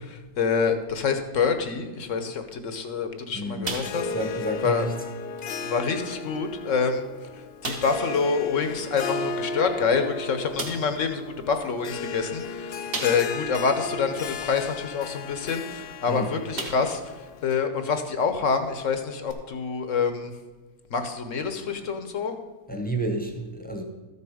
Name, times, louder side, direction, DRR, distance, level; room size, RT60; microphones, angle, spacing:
voice 1, 0.1-4.1 4.6-4.9 5.6-7.0 7.3-17.1 17.4-20.3 20.9-22.4, left 5 dB, 55° left, 8 dB, 1.1 m, -27 dB
voice 2, 3.3-3.7 4.1-4.9 16.1-16.3 22.7-23.8, right 1 dB, 5° left, 3 dB, 0.9 m, -30 dB
sound 1, 3.6-4.3 4.6-4.8 5.4-5.5 6.3-6.4 6.8-6.9 7.6-8.1 9.7-9.8 10.6-11.0 12.9-13.5 14.0-14.1 15.9-16.1 16.5-17.1 17.5-17.6 19.3-19.4, right 2 dB, 40° right, 1.5 m, -35 dB
Harp, 3.7-17.5, left 4 dB, 80° left, 0.5 m, -35 dB
13.5 x 6.9 x 4.9 m, 1.3 s
omnidirectional pair, 1.7 m